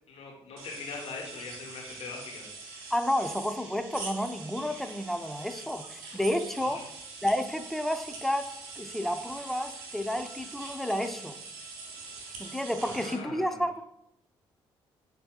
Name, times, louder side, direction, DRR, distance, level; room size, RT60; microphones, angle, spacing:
voice 1, 0.1-2.4 6.6-6.8 12.8-13.6, left 4 dB, 60° left, 0 dB, 1.2 m, -41 dB
sound 1, 0.6-13.1, right 3 dB, 80° right, 0.7 m, -43 dB
voice 2, 2.9-6.8 7.2-8.5 8.8-11.4 12.4-13.8, left 1 dB, ahead, 8 dB, 0.4 m, -31 dB
7.5 x 2.7 x 2.4 m, 0.78 s
hypercardioid pair, 45°, 11 cm